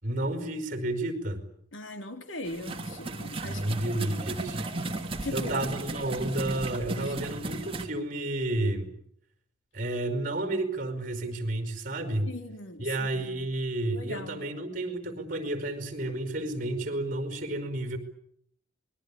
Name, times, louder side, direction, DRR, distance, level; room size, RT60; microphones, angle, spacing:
voice 1, 0.0-1.4 3.4-4.6 5.3-8.9 9.7-12.3 12.8-18.0, right 1 dB, 45° right, 5.2 m, -31 dB
voice 2, 1.7-3.6 5.2-5.8 6.9-7.1 12.3-13.5 13.9-14.4, left 2 dB, 80° left, 3.4 m, -40 dB
sound 1, 2.4-7.9, right 2 dB, 30° right, 2.9 m, -35 dB
27.5 x 22.0 x 8.6 m
head